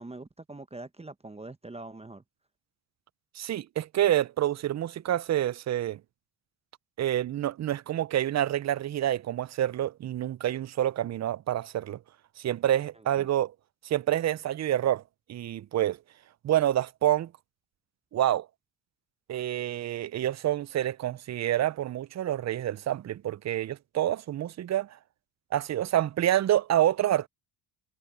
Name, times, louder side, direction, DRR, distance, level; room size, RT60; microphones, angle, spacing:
voice 1, 0.0-2.2 13.2-13.3, right 2 dB, 15° right, 1.0 m, -43 dB
voice 2, 3.4-6.0 7.0-12.0 12.4-13.5 13.8-15.0 15.3-16.0 16.4-17.3 18.1-18.5 19.3-25.0 25.5-27.3, right 12 dB, 35° right, 0.5 m, -27 dB
supercardioid pair, 80°, 46 cm